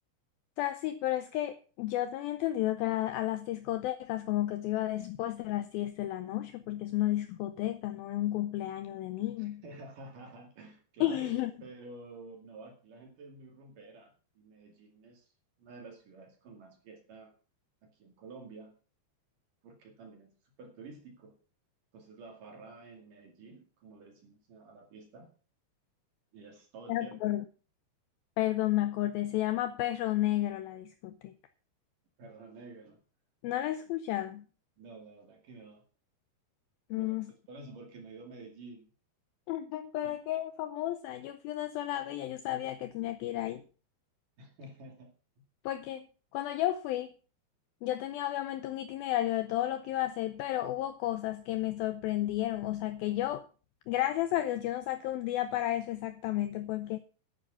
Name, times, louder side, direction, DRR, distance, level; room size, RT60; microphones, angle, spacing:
voice 1, 0.6-9.6 11.0-11.5 26.9-27.5 28.4-31.3 33.4-34.5 36.9-37.3 39.5-43.6 45.6-46.1 46.3-47.1 47.8-53.5 53.9-57.0, left 14 dB, 85° left, 2.1 m, -32 dB
voice 2, 9.4-15.3 15.6-17.3 17.8-18.7 19.6-20.3 20.6-21.4 21.9-25.3 26.3-27.4 32.2-33.0 33.4-33.6 34.8-35.8 37.0-38.9 40.0-40.2 44.4-45.4, right 3 dB, 55° right, 3.6 m, -50 dB
11.5 x 9.6 x 5.7 m
omnidirectional pair, 5.1 m